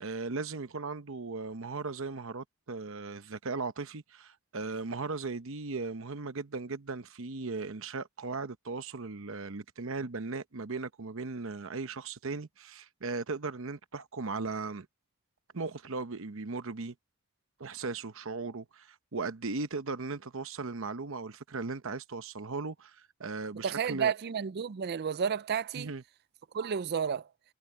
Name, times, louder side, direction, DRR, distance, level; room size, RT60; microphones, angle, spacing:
voice 1, 0.0-14.9 15.5-16.9 17.6-24.1 25.7-26.0, right 3 dB, 60° right, 0.9 m, -37 dB
voice 2, 23.6-25.9 26.5-27.3, right 7 dB, 45° right, 0.4 m, -31 dB
head